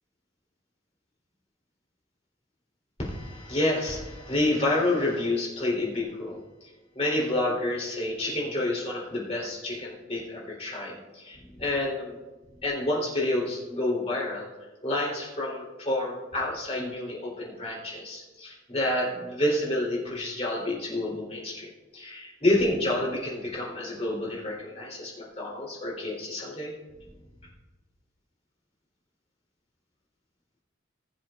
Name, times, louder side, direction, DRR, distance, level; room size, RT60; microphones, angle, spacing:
voice 1, 3.0-6.4 6.9-12.2 12.6-14.4 14.8-21.7 21.9-26.7, left 1 dB, 30° left, -5 dB, 3.3 m, -29 dB
21.0 x 7.4 x 2.4 m, 1.2 s
head